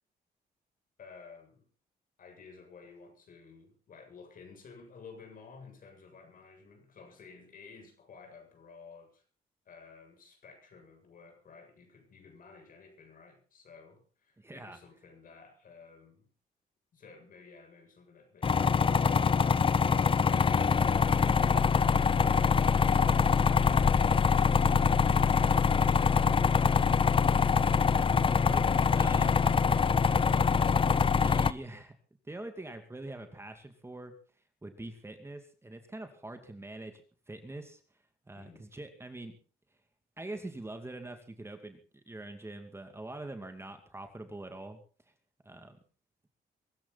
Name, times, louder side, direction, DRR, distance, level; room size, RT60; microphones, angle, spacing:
voice 1, 1.0-1.7 2.2-9.2 9.7-16.3 38.4-38.7, left 5 dB, 60° left, 4 dB, 7.7 m, -54 dB
voice 2, 14.4-14.8 28.4-28.7 29.0-29.4 31.2-32.0 32.2-34.1 34.6-37.0 37.3-37.8 38.3-39.4 40.2-41.8 42.1-44.8 45.4-45.8, right 2 dB, 15° right, 6 dB, 2.6 m, -43 dB
sound 1, 18.4-31.5, left 6 dB, 30° left, 0.7 m, -24 dB
23.5 x 13.5 x 4.3 m, 0.40 s
cardioid pair, 95°, 16 cm